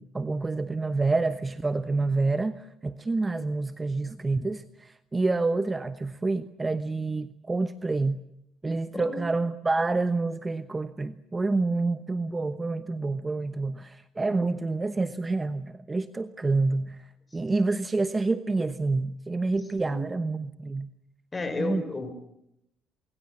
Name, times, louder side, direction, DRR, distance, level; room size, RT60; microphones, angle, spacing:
voice 1, 0.0-8.2 8.6-20.9 21.6-21.8, right 3 dB, 20° right, 12 dB, 1.0 m, -28 dB
voice 2, 21.3-22.1, left 3 dB, 25° left, 10 dB, 5.6 m, -32 dB
23.5 x 23.5 x 7.7 m, 0.77 s
supercardioid pair, 75°, 0 cm